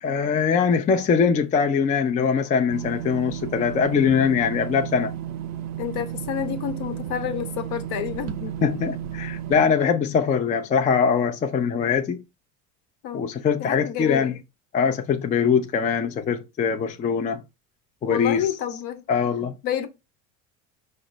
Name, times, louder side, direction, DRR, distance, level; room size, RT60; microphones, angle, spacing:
voice 1, 0.0-5.1 8.6-12.2 13.1-14.4 14.7-17.4 18.0-18.5 19.1-19.5, left 6 dB, 20° left, 0.3 m, -22 dB
sound 1, 2.7-9.7, right 10 dB, 35° right, 0.6 m, -33 dB
voice 2, 5.8-8.6 13.0-13.2 13.6-14.3 18.0-19.0 19.6-19.9, left 10 dB, 55° left, 0.8 m, -29 dB
4.9 x 2.2 x 3.8 m
hypercardioid pair, 75°, 46 cm